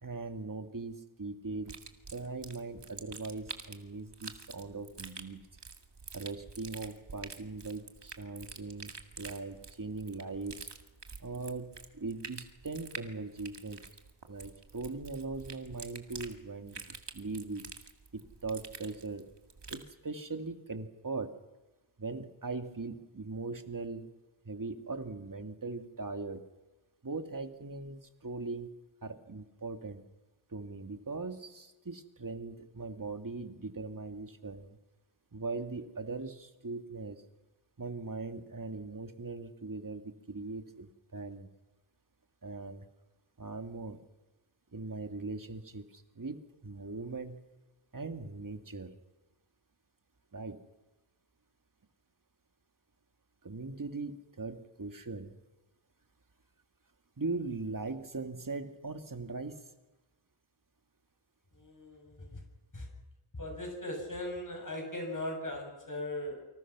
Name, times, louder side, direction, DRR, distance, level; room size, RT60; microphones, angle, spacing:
voice 1, 0.0-1.8 2.1-5.4 6.1-10.7 11.2-13.8 14.3-17.6 18.1-19.3 19.7-21.4 22.0-24.1 24.4-26.4 27.0-30.0 30.5-34.8 35.3-37.2 37.8-41.5 42.4-42.9 43.4-44.0 44.7-47.5 47.9-49.0 50.3-50.6 53.4-55.4 57.2-59.7, right 3 dB, 40° right, 6 dB, 2.3 m, -40 dB
sound 1, 1.6-19.9, right 4 dB, 55° right, 2.2 m, -48 dB
voice 2, 61.5-62.4 62.7-62.9 63.3-66.4, left 1 dB, 40° left, 3 dB, 7.7 m, -39 dB
29.0 x 25.0 x 6.2 m, 1.1 s
wide cardioid pair, 85°, 49 cm